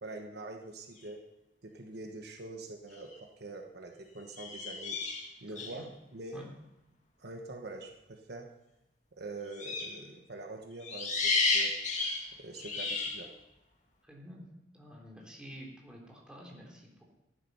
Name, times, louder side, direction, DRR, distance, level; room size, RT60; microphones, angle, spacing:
voice 1, 0.0-1.2 1.6-5.0 5.4-6.4 7.2-8.5 9.1-11.8 12.4-13.4, right 2 dB, 60° right, 3 dB, 1.3 m, -44 dB
sound 1, 2.9-3.2 4.3-5.8 9.5-10.0 10.8-13.3, left 3 dB, 40° left, 2.2 m, -32 dB
voice 2, 14.1-14.4 14.7-17.0, equal, 5° right, -2 dB, 3.7 m, -49 dB
14.5 x 11.0 x 5.6 m, 0.94 s
head